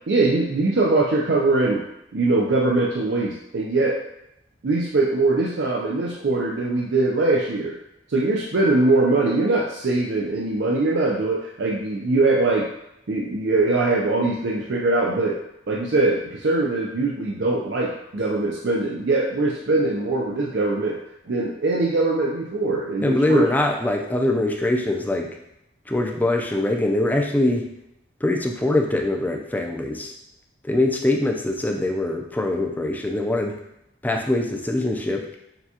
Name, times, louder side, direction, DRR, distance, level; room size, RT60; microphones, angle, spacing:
voice 1, 0.1-1.8 2.1-4.0 4.6-7.8 8.1-12.7 13.1-15.4 15.7-21.0 21.3-23.5, right 2 dB, 75° right, -3 dB, 0.5 m, -22 dB
voice 2, 23.0-25.3 25.9-27.6 28.2-30.1 30.6-33.6 34.0-35.3, left 1 dB, 10° left, 1 dB, 0.4 m, -23 dB
6.7 x 2.3 x 2.8 m, 0.83 s
head